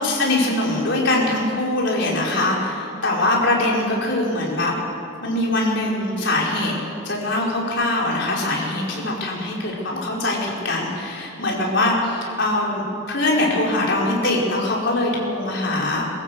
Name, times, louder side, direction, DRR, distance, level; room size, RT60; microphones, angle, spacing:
voice 1, 0.0-4.8 5.2-6.7 7.0-16.0, left 2 dB, 60° left, -3 dB, 4.9 m, -22 dB
24.0 x 14.5 x 7.9 m, 2.7 s
head